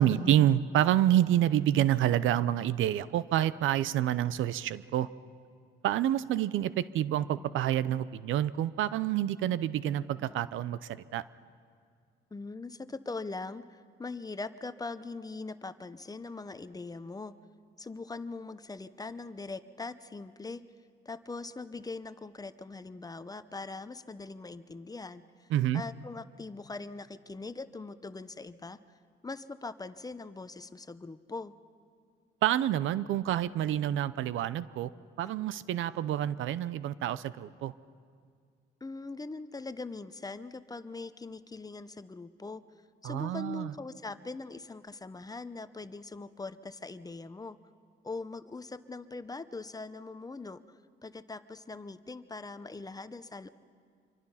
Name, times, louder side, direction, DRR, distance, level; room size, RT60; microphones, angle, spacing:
voice 1, 0.0-5.1 5.8-11.2 25.5-25.8 32.4-34.9 35.2-37.7 43.0-43.7, right 11 dB, 80° right, 17 dB, 0.6 m, -28 dB
voice 2, 12.3-17.4 17.8-20.6 21.0-25.5 25.7-28.8 29.2-31.5 35.2-35.3 38.8-42.6 43.0-47.6 48.0-50.6 51.0-53.5, left 3 dB, 20° left, 13 dB, 0.8 m, -41 dB
26.0 x 24.0 x 5.7 m, 2.1 s
cardioid pair, 90°, 20 cm